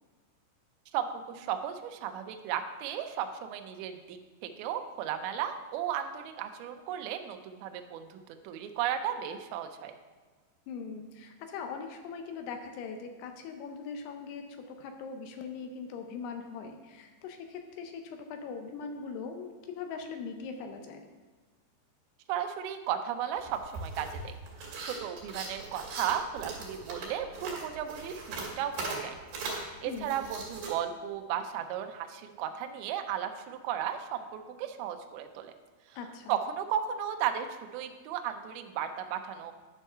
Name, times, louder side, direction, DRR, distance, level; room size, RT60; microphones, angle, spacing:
voice 1, 0.9-8.2 8.4-9.9 22.3-24.3 24.8-29.2 29.5-35.5 36.3-39.5, right 9 dB, 85° right, 6 dB, 2.1 m, -35 dB
voice 2, 10.7-21.0 29.9-30.2 36.0-36.4, left 5 dB, 80° left, 5 dB, 2.5 m, -41 dB
sound 1, 23.4-30.7, right 3 dB, 55° right, 3.1 m, -40 dB
10.0 x 4.6 x 5.4 m, 1.4 s
omnidirectional pair, 5.1 m